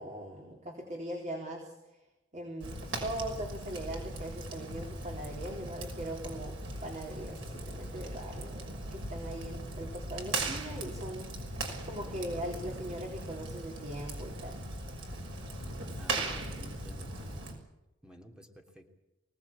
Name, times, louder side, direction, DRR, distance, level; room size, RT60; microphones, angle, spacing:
voice 1, 0.0-1.7 2.3-11.3 11.9-14.7, right 1 dB, 35° right, 1 dB, 3.9 m, -40 dB
Fire, 2.6-17.5, right 2 dB, 65° right, 6.0 m, -39 dB
voice 2, 16.0-17.1 18.0-18.9, left 1 dB, 5° right, 3 dB, 3.2 m, -52 dB
24.5 x 18.5 x 8.7 m, 0.97 s
head